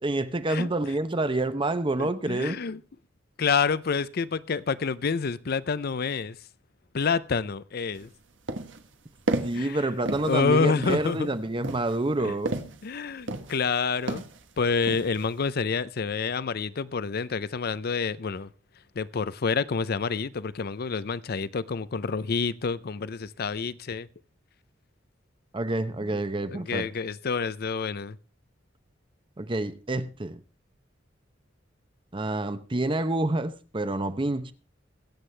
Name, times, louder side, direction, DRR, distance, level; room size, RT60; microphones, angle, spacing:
voice 1, 0.0-2.6 9.4-12.6 25.5-26.9 29.4-30.4 32.1-34.5, right 2 dB, 25° right, 0.8 m, -28 dB
voice 2, 2.0-2.8 3.4-6.4 6.9-8.1 9.6-9.8 10.2-11.3 12.2-12.3 12.8-14.2 14.6-18.5 19.0-24.1 26.5-28.2, left 5 dB, 55° left, 0.5 m, -28 dB
sound 1, 7.9-8.1 8.5-8.9 9.3-9.7 10.1-10.4 10.8-11.2 11.6-12.9 13.3-13.7 14.1-14.4 14.9-15.3, right 2 dB, 80° right, 1.2 m, -32 dB
22.5 x 8.2 x 3.3 m
head